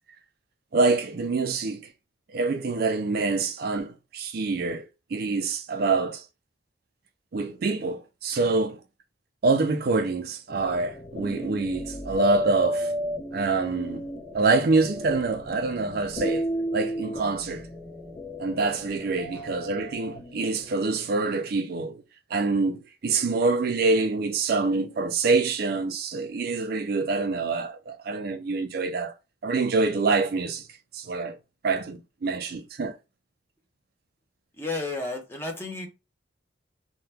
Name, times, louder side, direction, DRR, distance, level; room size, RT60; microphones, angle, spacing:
voice 1, 0.7-1.9 2.3-6.2 7.3-8.8 9.4-12.9 13.3-14.1 14.3-16.5 16.7-17.7 18.4-22.0 22.3-29.1 29.4-30.7 30.9-31.4 31.6-33.0, right 3 dB, 50° right, 0.4 m, -26 dB
sound 1, 10.5-20.9, equal, 45° left, 0.9 m, -33 dB
voice 2, 34.6-35.9, left 3 dB, 10° left, 0.7 m, -32 dB
2.8 x 2.2 x 3.3 m
head